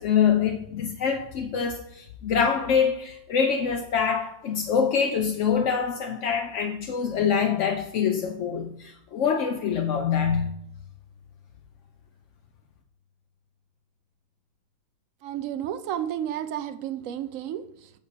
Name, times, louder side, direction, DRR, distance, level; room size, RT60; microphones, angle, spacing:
voice 1, 0.0-10.6, left 7 dB, 65° left, 0.7 m, -25 dB
Bowed string instrument, 10.2-12.6, left 3 dB, 40° left, 1.4 m, -38 dB
voice 2, 15.2-17.9, right 10 dB, 75° right, 0.7 m, -32 dB
6.7 x 5.1 x 6.6 m
omnidirectional pair, 2.0 m